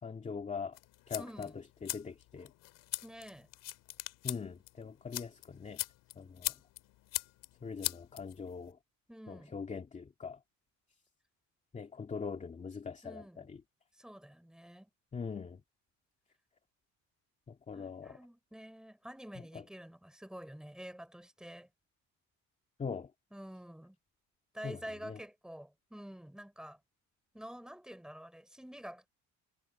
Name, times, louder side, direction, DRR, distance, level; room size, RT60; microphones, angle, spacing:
voice 1, 0.0-0.8 1.1-1.5 1.8-2.5 4.2-5.8 6.2-6.5 7.6-8.8 9.3-10.4 11.7-13.6 15.1-15.6 17.5-18.2 22.8-23.1 24.6-25.2, left 5 dB, 25° left, 2.4 m, -42 dB
sound 1, 0.7-8.7, left 17 dB, 90° left, 3.1 m, -42 dB
voice 2, 1.2-1.5 3.0-3.5 9.1-9.6 13.0-13.5 14.0-14.9 17.7-21.7 23.3-24.0 24.5-26.8 27.3-29.1, equal, ahead, 4.6 m, -48 dB
cardioid pair, 155°, 31 cm